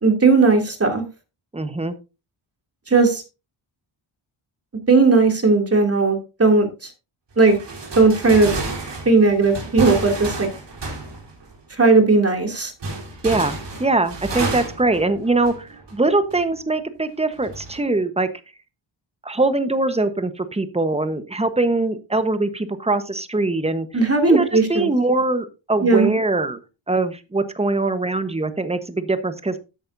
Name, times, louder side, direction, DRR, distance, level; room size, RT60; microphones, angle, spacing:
voice 1, 0.0-1.0 2.9-3.2 4.9-6.9 7.4-7.6 8.0-8.5 9.0-10.5 11.8-12.7 23.9-24.9 25.8-26.1, right 3 dB, 30° right, 3 dB, 2.8 m, -16 dB
voice 2, 1.5-1.9 13.2-13.5 13.8-18.3 19.2-23.9 24.2-26.6 26.9-29.6, right 2 dB, 15° right, 10 dB, 1.2 m, -22 dB
sound 1, 7.5-11.6 12.8-15.9 16.3-16.4 17.4-17.8, right 3 dB, 60° right, 4.0 m, -30 dB
13.0 x 8.8 x 2.7 m, 0.29 s
cardioid pair, 90°, 48 cm